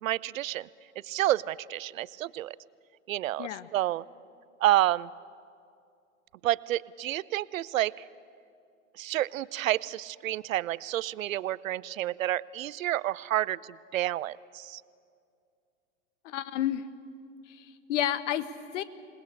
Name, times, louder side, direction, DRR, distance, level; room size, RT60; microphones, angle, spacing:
voice 1, 0.0-0.7 1.0-2.6 3.1-4.1 4.6-5.1 6.4-8.0 9.0-14.8, right 14 dB, 70° right, 20 dB, 0.7 m, -29 dB
voice 2, 16.2-16.8 17.5-18.5 18.7-18.8, left 11 dB, 60° left, 13 dB, 1.4 m, -30 dB
27.5 x 19.5 x 8.4 m, 2.4 s
hypercardioid pair, 110°, 41 cm